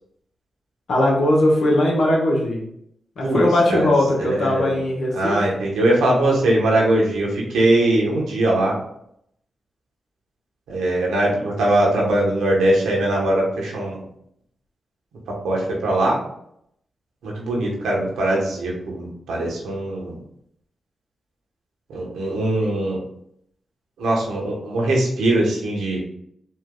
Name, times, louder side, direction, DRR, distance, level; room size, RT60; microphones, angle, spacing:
voice 1, 0.9-2.6 3.2-5.4, left 1 dB, 80° left, -2 dB, 1.3 m, -19 dB
voice 2, 4.2-4.8 5.1-8.8 10.7-14.0 15.4-16.2 17.2-20.2 21.9-23.0 24.0-26.0, right 1 dB, 90° right, -2 dB, 1.2 m, -21 dB
4.4 x 2.7 x 3.8 m, 0.72 s
supercardioid pair, 45°, 0 cm